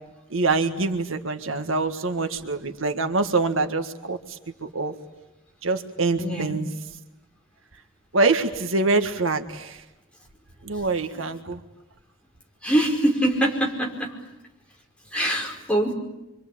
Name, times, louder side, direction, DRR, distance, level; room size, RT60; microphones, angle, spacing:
voice 1, 0.3-4.9 5.6-6.7 8.1-9.8 10.6-11.6, right 3 dB, 75° right, 7 dB, 1.7 m, -25 dB
voice 2, 6.2-6.6 12.6-14.1 15.1-15.9, right 1 dB, 5° left, -1 dB, 5.1 m, -23 dB
27.0 x 25.0 x 8.7 m, 0.99 s
head